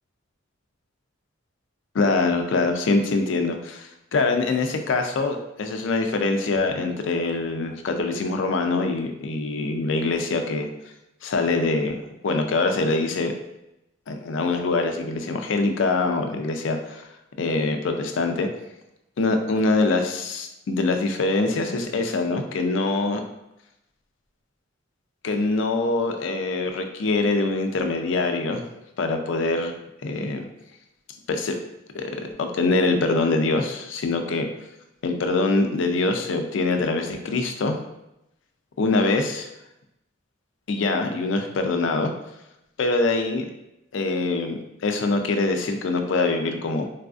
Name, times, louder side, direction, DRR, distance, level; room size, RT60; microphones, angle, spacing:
voice 1, 1.9-10.7 11.2-12.0 12.2-13.3 14.1-17.1 17.4-18.5 19.2-23.2 25.2-28.6 29.0-29.8 30.0-30.4 31.3-31.5 31.9-32.1 32.4-34.5 35.0-37.8 38.8-39.5 40.7-42.1 42.8-43.5 43.9-46.8, left 3 dB, 70° left, 6 dB, 0.4 m, -24 dB
3.9 x 2.3 x 2.5 m, 0.88 s
head